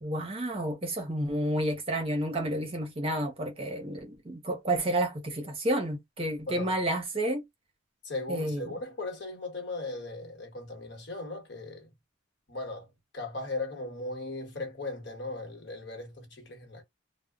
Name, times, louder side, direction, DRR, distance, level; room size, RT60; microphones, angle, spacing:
voice 1, 0.0-7.4 8.3-8.7, right 1 dB, 30° right, 0.7 m, -30 dB
voice 2, 8.0-11.9 12.5-12.9 13.1-16.8, left 2 dB, 55° left, 1.2 m, -37 dB
2.1 x 2.1 x 3.5 m
head